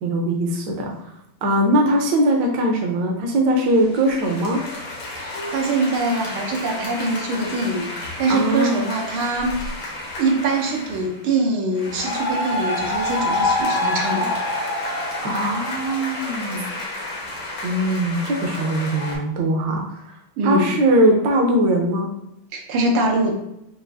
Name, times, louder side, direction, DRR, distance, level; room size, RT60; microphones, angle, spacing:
voice 1, 0.0-0.9 1.4-4.6 8.3-8.8 15.2-16.7 17.6-20.0 20.4-22.1, right 1 dB, 65° right, 1 dB, 1.3 m, -20 dB
sound 1, 3.7-11.1 11.8-19.2, left 1 dB, 75° left, 1.8 m, -28 dB
voice 2, 5.2-9.7 10.2-14.3 20.4-20.7 22.5-23.3, right 2 dB, 85° right, 0 dB, 1.7 m, -23 dB
5.9 x 2.5 x 2.6 m, 0.81 s
omnidirectional pair, 2.3 m